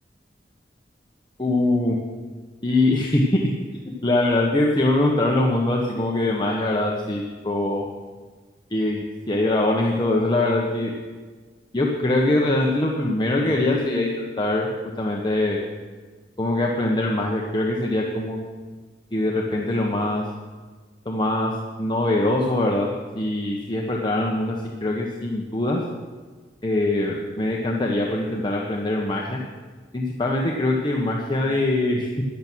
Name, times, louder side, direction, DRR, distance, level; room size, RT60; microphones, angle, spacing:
voice 1, 1.4-2.0 2.6-3.4 3.8-7.8 8.7-10.9 11.7-14.7 15.0-15.6 16.4-18.4 19.1-20.2 21.0-21.5 21.8-22.9 23.2-25.8 26.6-29.4 29.9-32.2, left 2 dB, 25° left, -2 dB, 1.3 m, -23 dB
14.5 x 10.5 x 6.3 m, 1.4 s
head